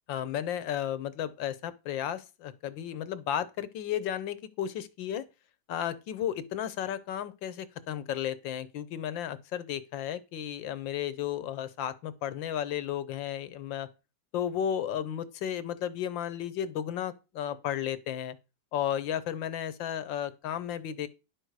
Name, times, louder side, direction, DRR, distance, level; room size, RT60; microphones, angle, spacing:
voice 1, 0.1-5.2 5.7-13.9 14.3-18.4 18.7-21.1, left 10 dB, 75° left, 1.5 m, -33 dB
10.5 x 6.5 x 4.7 m
omnidirectional pair, 2.1 m